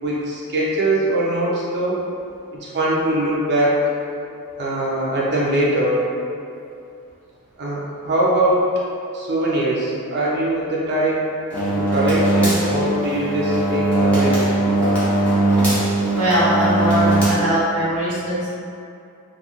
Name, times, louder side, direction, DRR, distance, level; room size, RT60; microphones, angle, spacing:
voice 1, 0.0-2.0 2.5-3.8 4.6-6.1 7.6-8.6 9.1-11.2 11.8-14.7, right 1 dB, 50° right, -6 dB, 0.5 m, -21 dB
sound 1, 11.5-17.3, right 2 dB, 5° left, 0.7 m, -19 dB
voice 2, 16.2-18.5, right 1 dB, 85° right, -9 dB, 0.9 m, -20 dB
2.4 x 2.3 x 2.8 m, 2.5 s
head